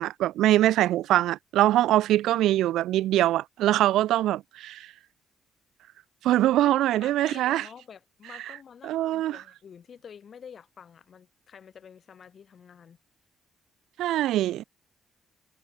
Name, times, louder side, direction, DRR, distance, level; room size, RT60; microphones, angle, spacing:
voice 1, 0.0-4.9 6.2-7.6 8.8-9.4 14.0-14.6, right 14 dB, 85° right, 0.6 m, -23 dB
voice 2, 6.6-13.0, left 7 dB, 50° left, 3.0 m, -48 dB
cardioid pair, 90°, 0 cm